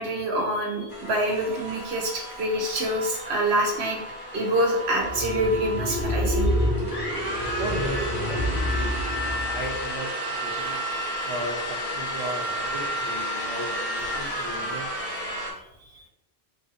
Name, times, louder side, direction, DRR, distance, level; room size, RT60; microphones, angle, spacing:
voice 1, 0.0-4.0 4.3-6.5 10.5-10.7 14.2-14.4, right 1 dB, 80° right, -1 dB, 1.1 m, -26 dB
sound 1, 0.9-15.5, equal, 70° left, 1.5 m, -32 dB
sound 2, 5.0-9.8, left 1 dB, 60° right, 1.1 m, -28 dB
voice 2, 7.6-10.8 11.2-14.9, right 1 dB, 35° right, -1 dB, 0.7 m, -36 dB
3.3 x 2.5 x 4.0 m, 0.84 s
omnidirectional pair, 1.1 m